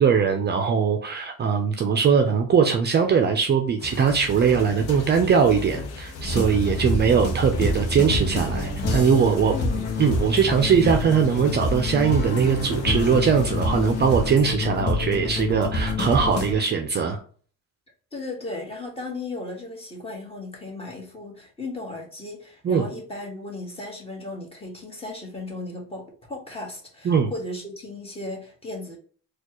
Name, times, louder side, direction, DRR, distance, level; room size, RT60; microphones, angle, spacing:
voice 1, 0.0-9.5 10.0-17.2 22.6-22.8 27.0-27.3, right 6 dB, 35° right, 4 dB, 0.5 m, -21 dB
sound 1, 3.8-14.4, left 3 dB, 55° left, 0.9 m, -37 dB
sound 2, 6.2-16.5, left 2 dB, 35° left, 1.1 m, -27 dB
voice 2, 9.4-9.9 18.1-29.0, left 2 dB, 20° left, 0 dB, 1.5 m, -36 dB
4.2 x 2.4 x 3.0 m, 0.44 s
cardioid pair, 115°, 30 cm